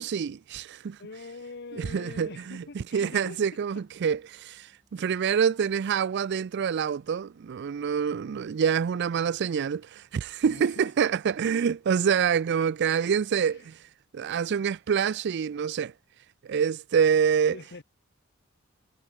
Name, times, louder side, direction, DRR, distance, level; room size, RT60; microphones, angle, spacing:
voice 1, 0.0-1.0 1.7-13.8 14.1-15.9 16.4-17.6, right 7 dB, 60° right, 0.4 m, -26 dB
voice 2, 1.0-3.4 10.4-10.9 13.5-13.7 17.5-17.8, left 3 dB, 55° left, 0.9 m, -43 dB
sound 1, 2.2-9.4, equal, 10° right, 6.2 m, -71 dB
head